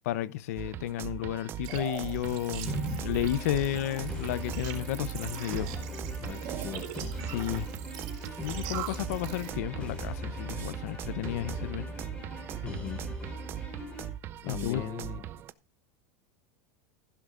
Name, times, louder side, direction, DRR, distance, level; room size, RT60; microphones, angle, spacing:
voice 1, 0.1-5.7 7.3-7.7 8.4-11.8 14.4-14.8, left 13 dB, 75° left, 0.8 m, -32 dB
sound 1, 0.6-15.5, right 12 dB, 25° right, 0.5 m, -40 dB
sound 2, 1.6-9.5, right 9 dB, 50° right, 4.0 m, -40 dB
sound 3, 2.7-14.1, equal, 10° left, 4.6 m, -40 dB
voice 2, 6.2-6.9 12.6-13.0 14.4-15.2, left 12 dB, 30° left, 0.7 m, -39 dB
15.5 x 11.5 x 2.6 m
supercardioid pair, 165°, 8 cm